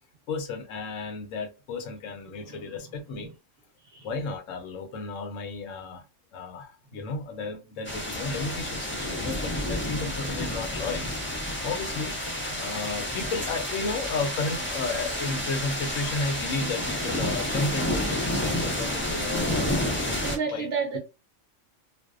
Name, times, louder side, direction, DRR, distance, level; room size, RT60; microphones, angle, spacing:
voice 1, 0.3-3.3 4.0-6.0 6.3-20.7, left 3 dB, 75° left, 1.0 m, -33 dB
voice 2, 2.3-3.3 3.9-4.1 9.1-9.2 12.2-12.9 20.2-21.0, right 5 dB, 60° right, 0.9 m, -35 dB
sound 1, 7.8-20.4, left 1 dB, 15° left, 0.4 m, -30 dB
2.5 x 2.1 x 2.3 m
omnidirectional pair, 1.3 m